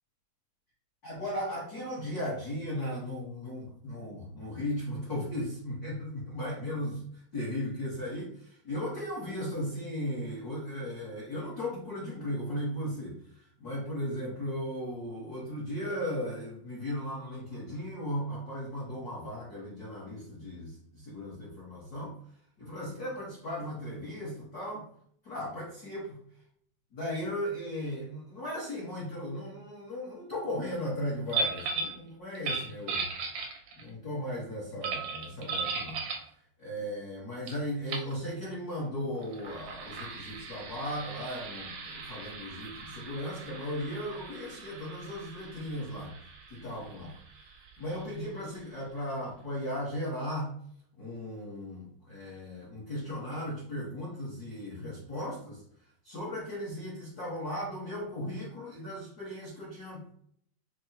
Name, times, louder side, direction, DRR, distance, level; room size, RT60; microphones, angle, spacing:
voice 1, 1.0-22.1 22.6-24.8 25.2-26.2 26.9-33.1 33.8-36.0 36.6-46.1 46.5-47.2 47.8-50.5 51.0-55.6 56.0-60.1, equal, 75° left, -7 dB, 0.8 m, -36 dB
sound 1, 31.3-32.0 32.4-33.9 34.8-36.3 37.5-37.6 37.9-38.1 39.2-48.5, right 4 dB, 80° right, 1.3 m, -38 dB
6.1 x 2.1 x 2.7 m, 0.65 s
omnidirectional pair, 3.5 m